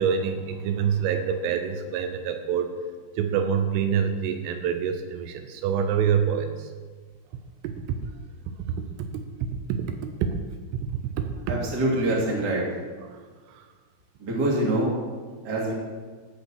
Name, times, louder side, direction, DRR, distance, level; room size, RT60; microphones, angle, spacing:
voice 1, 0.0-2.7 3.2-6.7 9.7-10.4 11.0-11.2 13.1-13.2 13.6-13.7, right 7 dB, 80° right, 6 dB, 3.2 m, -26 dB
voice 2, 11.5-12.7 14.2-14.9 15.4-15.7, right 1 dB, 30° right, -4 dB, 2.1 m, -25 dB
15.0 x 5.4 x 6.5 m, 1.5 s
omnidirectional pair, 5.9 m